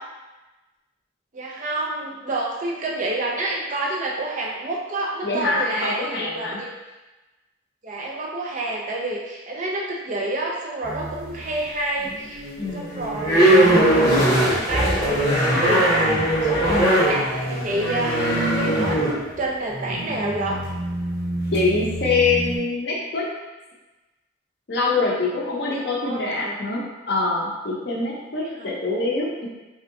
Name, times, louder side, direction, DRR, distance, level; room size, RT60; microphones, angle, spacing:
voice 1, 1.3-6.7 7.8-12.4 12.7-14.0 14.4-16.1 16.4-20.6 26.0-26.5 28.4-28.7, right 2 dB, 40° right, -2 dB, 0.5 m, -28 dB
voice 2, 5.2-6.6 12.6-13.0 16.7-17.0 21.5-23.2 24.7-29.5, left 3 dB, 55° left, -3 dB, 0.6 m, -24 dB
sound 1, 10.8-11.5 12.0-22.6, right 1 dB, 15° left, 0.8 m, -21 dB
3.3 x 2.7 x 2.6 m, 1.1 s
head